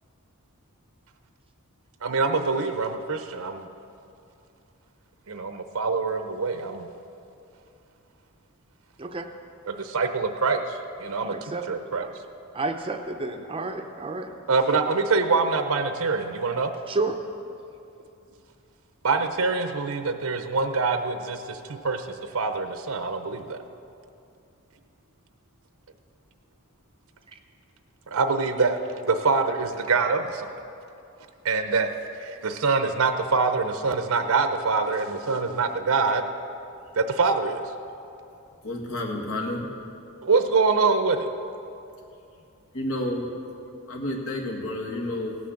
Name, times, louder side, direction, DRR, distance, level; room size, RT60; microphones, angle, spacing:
voice 1, 2.0-3.7 5.3-6.9 9.7-12.1 14.5-16.7 19.0-23.6 28.1-30.5 31.4-31.9 32.2-36.2 37.0-37.7 40.2-41.3, right 4 dB, 75° right, 7 dB, 0.7 m, -25 dB
voice 2, 11.2-11.8 12.5-14.3 16.9-17.2 27.3-27.4, right 3 dB, 25° right, 5 dB, 0.6 m, -30 dB
voice 3, 38.6-39.7 42.7-43.3 43.9-45.4, left 1 dB, 70° left, 0 dB, 1.8 m, -30 dB
17.0 x 6.2 x 7.1 m, 2.7 s
head